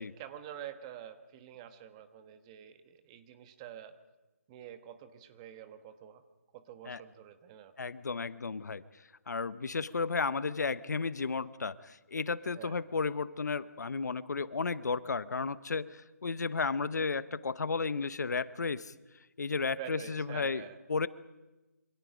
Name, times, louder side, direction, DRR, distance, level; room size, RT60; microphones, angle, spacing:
voice 1, 0.0-4.0 4.5-6.2 6.5-7.7 12.5-12.8 19.8-20.8, right 10 dB, 20° right, 9 dB, 1.3 m, -47 dB
voice 2, 7.8-8.8 9.3-18.9 19.4-20.6 20.9-21.1, left 4 dB, 75° left, 16 dB, 1.0 m, -33 dB
27.5 x 26.0 x 5.1 m, 1.1 s
hypercardioid pair, 165°, 9 cm